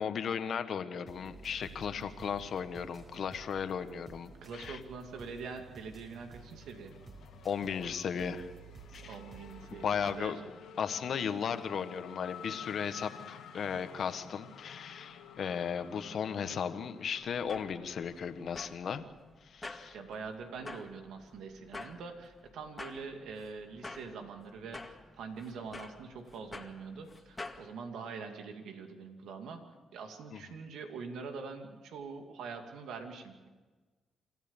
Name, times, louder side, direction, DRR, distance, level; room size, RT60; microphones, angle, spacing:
voice 1, 0.0-4.8 7.4-8.5 8.9-9.2 9.8-10.4 10.8-19.1 19.4-20.0 30.3-30.4, left 7 dB, 60° left, 9 dB, 1.5 m, -36 dB
sound 1, 1.1-10.1, right 4 dB, 35° right, 4.8 m, -52 dB
Race car auto racing / Accelerating revving vroom, 4.0-5.1 5.4-19.1, left 7 dB, 80° left, 2.4 m, -52 dB
voice 2, 4.4-6.9 9.0-10.4 19.9-29.6 29.9-33.5, right 5 dB, 80° right, 5 dB, 2.5 m, -44 dB
sound 2, 17.2-27.6, left 2 dB, 20° left, 2.2 m, -49 dB
27.0 x 14.5 x 7.3 m, 1.3 s
cardioid pair, 75°, 0 cm